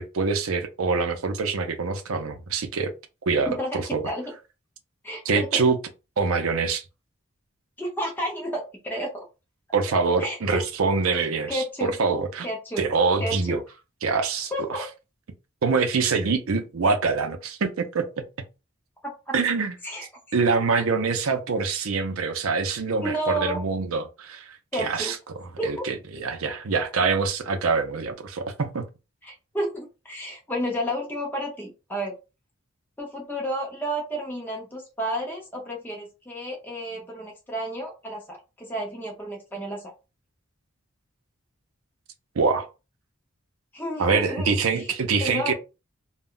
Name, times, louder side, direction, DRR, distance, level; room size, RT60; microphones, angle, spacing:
voice 1, 0.0-2.9 3.3-4.0 5.2-5.8 6.2-6.8 9.7-12.5 12.8-13.6 14.0-14.8 15.6-18.2 19.3-19.7 20.3-28.8 42.4-42.7 44.0-45.5, right 4 dB, 90° right, 0.5 m, -25 dB
voice 2, 3.5-4.2 5.0-5.6 7.8-9.2 10.2-10.6 11.1-11.9 12.4-12.8 13.2-13.6 14.5-14.8 19.0-19.3 19.8-20.1 23.0-23.6 24.7-25.1 25.6-25.9 29.2-32.1 33.0-39.9 43.7-44.9 45.2-45.5, equal, 10° left, 0.7 m, -31 dB
2.2 x 2.1 x 3.7 m
head